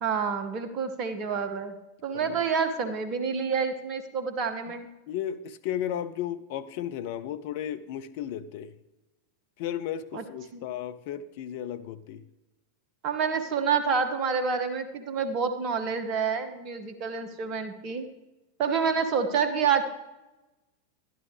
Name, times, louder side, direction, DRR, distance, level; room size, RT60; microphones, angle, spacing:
voice 1, 0.0-1.7 2.0-4.9 10.1-10.2 10.5-10.6 13.0-18.1 18.6-19.8, right 6 dB, 35° right, 9 dB, 1.1 m, -28 dB
voice 2, 5.1-8.7 9.6-12.2, left 10 dB, 50° left, 11 dB, 0.5 m, -34 dB
12.0 x 11.5 x 3.3 m, 1.0 s
figure-of-eight pair, 90°, 0 cm